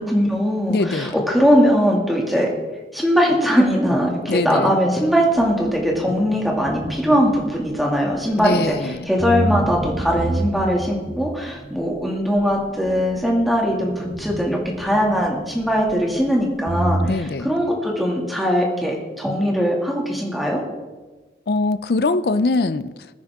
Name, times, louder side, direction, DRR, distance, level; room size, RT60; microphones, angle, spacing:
voice 1, 0.0-2.5 2.9-20.6, equal, ahead, 2.3 m, -20 dB
voice 2, 0.7-1.1 4.3-4.7 8.4-9.1 17.1-17.6 21.5-22.9, left 3 dB, 60° left, 0.5 m, -22 dB
sound 1, 5.3-8.8 9.2-16.4 16.7-17.1, right 1 dB, 25° right, 0.7 m, -29 dB
21.0 x 9.6 x 3.7 m
head